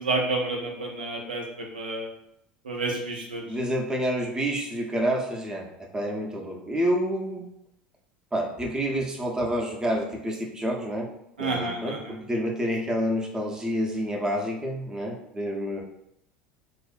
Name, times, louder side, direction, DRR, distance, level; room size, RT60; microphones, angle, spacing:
voice 1, 0.0-2.1 2.6-3.4 11.4-12.0, right 2 dB, 90° right, 0 dB, 0.4 m, -29 dB
voice 2, 3.4-5.7 5.9-7.4 8.3-11.1 11.4-15.8, equal, 15° right, 0 dB, 0.6 m, -28 dB
2.4 x 2.1 x 2.4 m, 0.76 s
hypercardioid pair, 75°, 5 cm